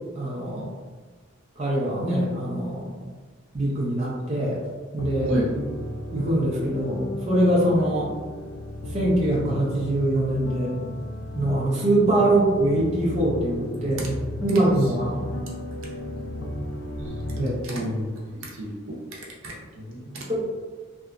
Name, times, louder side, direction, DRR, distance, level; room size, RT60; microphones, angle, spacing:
voice 1, 0.2-0.7 1.6-3.0 3.5-4.6 4.9-5.3 6.1-8.1 8.9-10.7 11.3-15.3 17.4-17.6 20.3-20.4, right 1 dB, 30° right, -6 dB, 0.5 m, -23 dB
sound 1, 5.0-17.4, left 1 dB, 60° left, 0.4 m, -34 dB
voice 2, 17.3-20.3, equal, 75° right, -3 dB, 0.6 m, -31 dB
2.8 x 2.3 x 2.3 m, 1.4 s
head